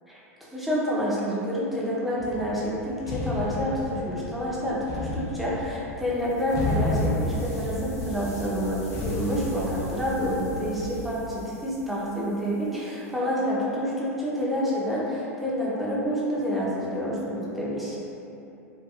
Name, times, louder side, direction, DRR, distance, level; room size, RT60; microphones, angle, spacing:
voice 1, 0.5-18.0, equal, ahead, -8 dB, 0.6 m, -28 dB
sound 1, 2.2-10.9, left 1 dB, 40° left, 0.4 m, -32 dB
sound 2, 4.0-11.2, equal, 85° right, 0.5 m, -40 dB
sound 3, 6.0-13.1, left 2 dB, 85° left, 0.7 m, -51 dB
2.3 x 2.2 x 2.8 m, 2.8 s
hypercardioid pair, 105°, 8 cm